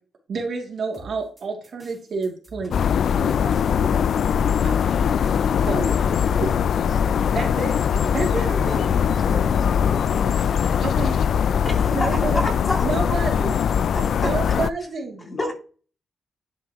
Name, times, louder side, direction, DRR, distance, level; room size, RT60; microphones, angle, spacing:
voice 1, 0.3-4.1 4.6-5.1 5.7-6.0 6.4-6.5 7.3-7.7 8.1-8.8 10.8-11.2 11.9-12.4 12.8-13.6 14.2-15.3, right 4 dB, 60° right, 1 dB, 2.7 m, -29 dB
sound 1, 0.9-14.6, right 2 dB, 15° right, 3.5 m, -44 dB
sound 2, 2.7-14.7, left 7 dB, 70° left, 0.3 m, -21 dB
voice 2, 6.2-7.6 8.6-10.4 11.8-11.9 15.2-15.5, left 3 dB, 50° left, 2 dB, 2.6 m, -36 dB
voice 3, 11.6-13.2 13.9-14.6 15.4-15.5, left 1 dB, 25° left, 2 dB, 2.6 m, -29 dB
10.5 x 5.5 x 3.1 m, 0.37 s
cardioid pair, 100°, 0 cm